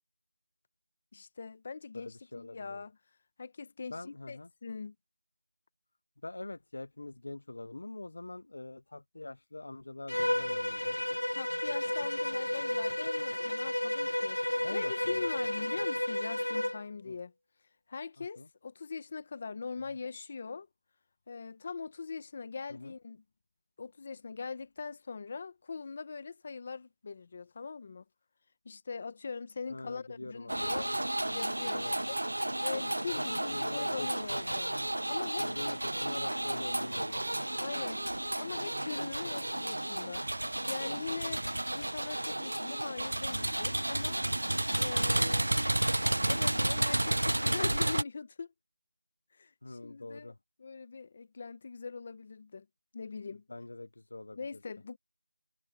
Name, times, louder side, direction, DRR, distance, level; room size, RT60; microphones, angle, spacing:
voice 1, 1.1-3.0 3.4-4.9 11.3-17.3 17.9-20.7 21.3-23.2 23.8-28.0 28.6-30.9 31.3-32.2 32.6-34.8 35.1-35.5 37.6-38.0 38.3-40.2 40.7-41.4 41.7-44.2 44.7-45.5 46.3-48.5 49.3-50.3 50.6-52.7 52.9-53.4 54.3-55.0, left 5 dB, 10° left, 0.8 m, -41 dB
voice 2, 1.9-2.8 3.9-4.5 6.2-11.0 14.6-15.3 17.1-17.2 18.2-18.5 22.7-22.9 29.7-30.9 31.7-32.0 33.5-34.1 35.4-37.2 37.5-37.6 41.3-41.4 45.4-45.5 49.6-50.4 53.5-54.4, left 2 dB, 25° left, 0.4 m, -44 dB
Bowed string instrument, 10.1-16.8, left 1 dB, 90° left, 0.7 m, -32 dB
sound 1, 30.5-48.0, right 1 dB, 55° right, 0.7 m, -32 dB
figure-of-eight pair, 180°, 0 cm